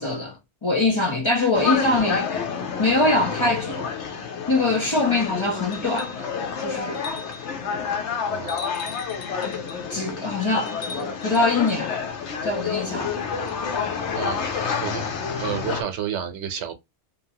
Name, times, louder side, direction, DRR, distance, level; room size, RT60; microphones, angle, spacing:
voice 1, 0.0-2.3 2.8-3.9 4.5-6.3 6.6-7.0 9.9-12.0 12.4-13.5, left 2 dB, 30° left, 0.8 m, -23 dB
sound 1, 1.5-15.8, left 6 dB, 80° left, 1.0 m, -29 dB
sound 2, 5.7-6.3 6.9-7.5 8.5-9.9 10.7-11.9 13.5-13.6, left 4 dB, 60° left, 0.6 m, -40 dB
voice 2, 8.3-8.7 13.8-15.0 15.4-16.7, right 9 dB, 80° right, 1.0 m, -31 dB
2.7 x 2.5 x 2.8 m
omnidirectional pair, 1.2 m